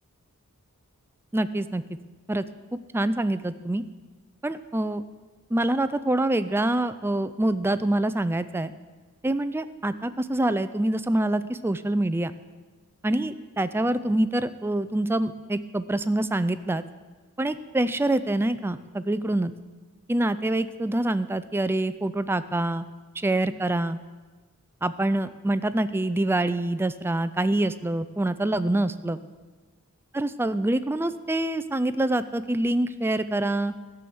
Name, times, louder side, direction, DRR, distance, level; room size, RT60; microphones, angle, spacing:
voice 1, 1.3-1.8 2.3-2.4 2.9-3.8 4.4-5.0 5.5-8.7 9.2-12.3 13.0-16.8 17.4-19.5 20.1-22.9 23.2-24.0 24.8-29.2 30.1-33.7, right 1 dB, 10° right, 13 dB, 0.3 m, -25 dB
14.5 x 7.0 x 7.8 m, 1.3 s
head